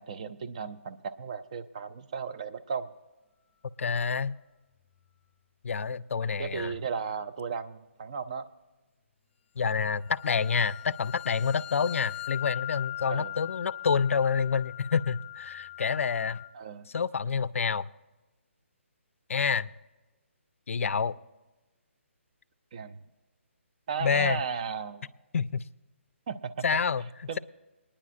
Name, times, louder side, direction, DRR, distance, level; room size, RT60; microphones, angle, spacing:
voice 1, 0.0-2.9 6.4-8.5 13.1-13.3 16.5-16.9 22.7-23.0 23.9-25.1 26.3-26.8 27.3-27.4, right 6 dB, 30° right, 12 dB, 0.3 m, -35 dB
sound 1, 3.3-3.8 4.2-4.5 10.0-16.5, left 16 dB, 20° left, 0.8 m, -41 dB
voice 2, 3.8-4.3 5.6-6.7 9.6-16.4 16.9-17.9 19.3-19.7 20.7-21.2 24.0-24.4 25.3-25.6 26.6-27.0, left 6 dB, 75° left, 17 dB, 0.3 m, -28 dB
26.0 x 9.9 x 2.5 m, 1.1 s
hypercardioid pair, 165°, 7 cm